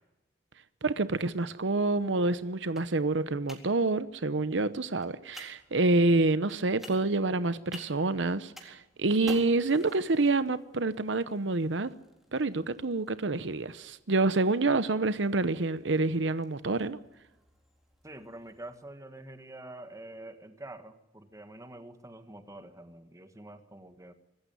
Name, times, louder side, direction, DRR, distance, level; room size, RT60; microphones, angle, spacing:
voice 1, 0.8-11.9 12.3-17.0, right 2 dB, 75° right, 0.9 m, -27 dB
sound 1, 0.9-18.8, equal, ahead, 3.9 m, -54 dB
voice 2, 18.0-24.1, right 1 dB, 20° right, 1.7 m, -46 dB
25.0 x 14.5 x 9.4 m
head